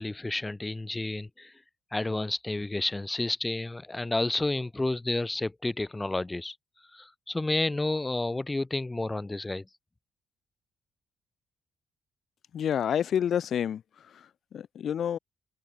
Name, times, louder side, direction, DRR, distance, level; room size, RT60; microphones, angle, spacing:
voice 1, 0.0-1.5 1.9-6.5 6.9-9.6, left 2 dB, 20° left, 3.4 m, -30 dB
voice 2, 12.5-13.8 14.5-15.2, left 9 dB, 65° left, 1.6 m, -28 dB
supercardioid pair, 50°, 0 cm